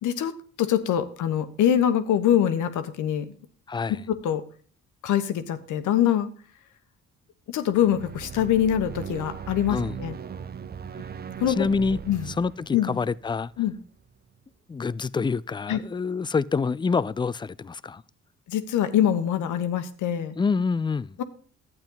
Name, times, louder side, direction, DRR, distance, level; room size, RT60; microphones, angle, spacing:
voice 1, 0.0-3.3 3.9-4.4 5.0-6.3 7.5-10.2 11.4-11.7 12.1-12.3 12.7-13.0 13.6-13.7 15.7-15.8 18.5-20.4 21.2-21.3, left 10 dB, 80° left, 1.2 m, -24 dB
voice 2, 3.7-4.0 9.7-10.0 11.5-12.0 12.3-13.5 14.7-18.0 20.4-21.2, left 4 dB, 15° left, 0.4 m, -27 dB
sound 1, 7.7-14.1, right 7 dB, 30° right, 0.6 m, -39 dB
12.0 x 8.9 x 3.9 m
cardioid pair, 90°, 30 cm